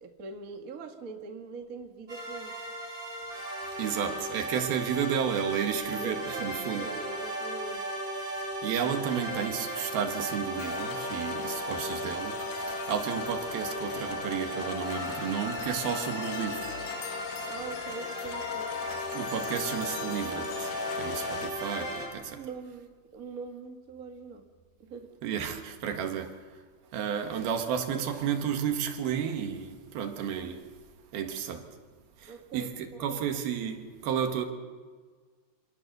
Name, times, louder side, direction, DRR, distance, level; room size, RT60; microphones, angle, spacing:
voice 1, 0.0-2.6 6.0-6.5 6.7-7.9 17.5-18.7 22.2-24.5 24.8-25.1 32.3-33.2, right 4 dB, 40° right, 1.3 m, -43 dB
sound 1, 2.1-22.1, right 1 dB, 20° right, 7.1 m, -36 dB
voice 2, 3.8-6.9 8.4-16.8 19.1-22.4 25.2-26.6 26.9-30.7 31.1-31.7 32.2-34.5, right 8 dB, 75° right, 3.5 m, -32 dB
sound 2, 10.6-21.5, left 9 dB, 70° left, 2.0 m, -38 dB
sound 3, 15.5-20.4, left 4 dB, 85° left, 3.7 m, -52 dB
26.0 x 18.5 x 6.8 m
omnidirectional pair, 4.4 m